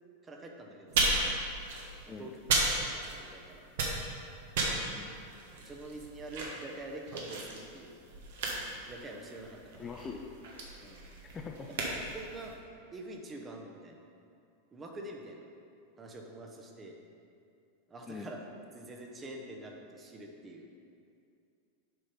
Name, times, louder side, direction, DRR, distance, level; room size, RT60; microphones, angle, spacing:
voice 1, 0.2-1.3 2.1-3.6 5.6-7.9 8.9-9.9 10.8-11.1 11.5-11.6 12.0-12.5 12.9-14.0 14.7-15.4 16.0-17.0 17.9-18.4 18.7-20.7, right 2 dB, 20° right, 1 dB, 1.0 m, -46 dB
sound 1, 0.9-3.4 3.7-12.5, right 2 dB, 55° right, 1.4 m, -34 dB
voice 2, 9.8-10.4 11.3-11.7 18.1-18.3, left 5 dB, 20° left, 2 dB, 0.5 m, -42 dB
7.7 x 5.6 x 5.2 m, 2.5 s
figure-of-eight pair, 90°, 0 cm